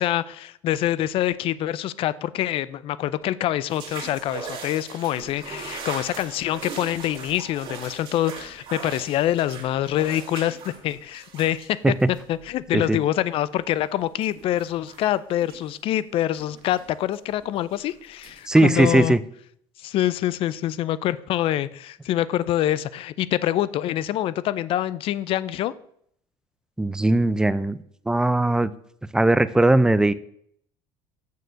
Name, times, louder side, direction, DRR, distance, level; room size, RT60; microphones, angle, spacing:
voice 1, 0.0-19.1 19.8-25.7, left 12 dB, 50° left, 18 dB, 0.5 m, -25 dB
sound 1, 3.7-12.5 13.8-13.9 14.2-15.8 16.4-17.9 18.2-18.5, right 5 dB, 45° right, 2.3 m, -40 dB
voice 2, 18.5-19.2 26.8-27.8 28.1-28.7 29.1-30.1, right 2 dB, 5° right, 15 dB, 0.4 m, -19 dB
6.7 x 6.7 x 6.3 m, 0.67 s
cardioid pair, 125°, 12 cm